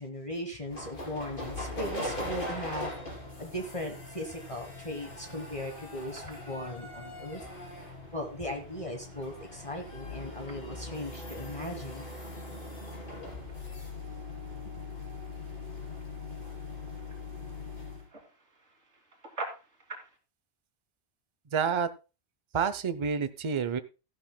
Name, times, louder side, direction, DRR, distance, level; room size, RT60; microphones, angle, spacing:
voice 1, 0.0-2.9 3.4-7.4 8.1-12.1, left 1 dB, 30° left, 3 dB, 1.4 m, -38 dB
sound 1, 0.7-18.1, left 2 dB, 50° left, 3.8 m, -41 dB
sound 2, 5.1-20.2, right 2 dB, 90° right, 2.5 m, -51 dB
voice 2, 21.5-21.9 22.5-23.8, right 6 dB, 35° right, 13 dB, 0.6 m, -28 dB
14.5 x 11.5 x 2.2 m, 0.30 s
omnidirectional pair, 1.1 m